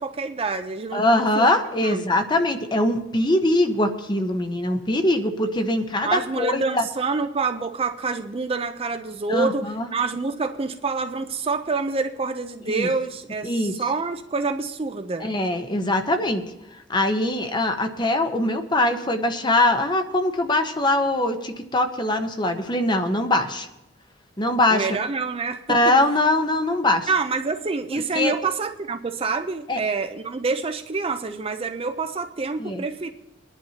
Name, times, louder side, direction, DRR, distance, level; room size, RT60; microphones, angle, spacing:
voice 1, 0.0-1.5 1.8-2.1 6.0-15.3 24.7-26.0 27.1-33.1, right 4 dB, 30° right, 7 dB, 0.5 m, -27 dB
voice 2, 0.9-6.9 9.3-9.9 12.7-12.9 13.4-13.7 15.2-16.4 16.9-23.7 24.4-24.9 25.7-27.1 28.1-28.3 29.7-29.8 32.6-32.8, left 1 dB, 25° left, 7 dB, 0.8 m, -22 dB
22.5 x 10.5 x 2.8 m, 0.92 s
head